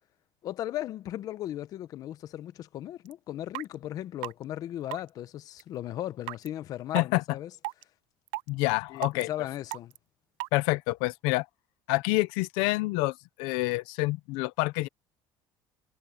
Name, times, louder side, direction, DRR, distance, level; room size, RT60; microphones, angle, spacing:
voice 1, 0.4-7.5 8.9-9.9, left 12 dB, 50° left, 0.9 m, -37 dB
sound 1, 3.1-3.2 3.5-3.7 4.2-4.3 4.9-5.1 5.6-5.7 6.3-6.5 7.0-7.1 7.6-7.8 8.3-8.5 9.0-9.2 9.7-10.0 10.4-10.5, right 24 dB, 85° right, 0.5 m, -34 dB
voice 2, 8.5-9.3 10.5-11.5 11.9-14.9, left 22 dB, 85° left, 0.8 m, -27 dB
cardioid pair, 140°, 8 cm